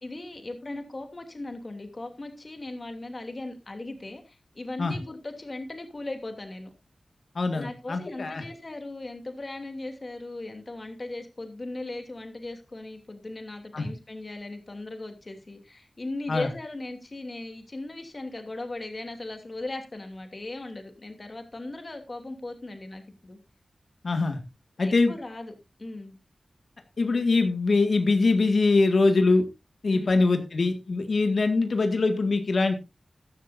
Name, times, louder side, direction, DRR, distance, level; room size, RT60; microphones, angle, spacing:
voice 1, 0.0-6.7 7.5-23.4 24.8-25.5 25.8-26.1 29.9-30.2, left 2 dB, 40° left, 5 dB, 2.9 m, -38 dB
voice 2, 7.4-8.4 13.7-13.9 16.3-16.5 24.0-24.4 24.8-25.1 27.0-29.4 29.8-32.7, left 3 dB, 65° left, 6 dB, 1.9 m, -23 dB
14.5 x 12.0 x 2.7 m, 0.26 s
wide cardioid pair, 100°, 0 cm